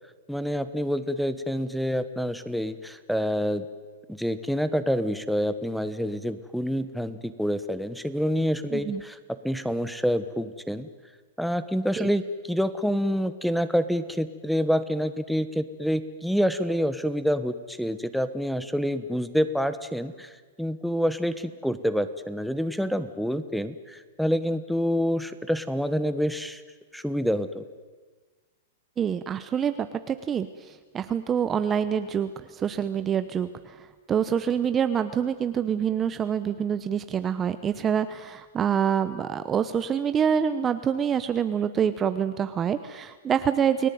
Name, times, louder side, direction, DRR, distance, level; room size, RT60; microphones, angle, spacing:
voice 1, 0.3-3.7 4.1-9.2 9.4-10.9 11.4-20.3 20.6-26.6 26.9-27.6, equal, ahead, 13 dB, 1.2 m, -27 dB
voice 2, 8.7-9.0 12.0-12.1 29.0-43.9, right 8 dB, 20° right, 11 dB, 0.9 m, -26 dB
29.5 x 18.0 x 9.4 m, 1.4 s
hypercardioid pair, 150°, 0 cm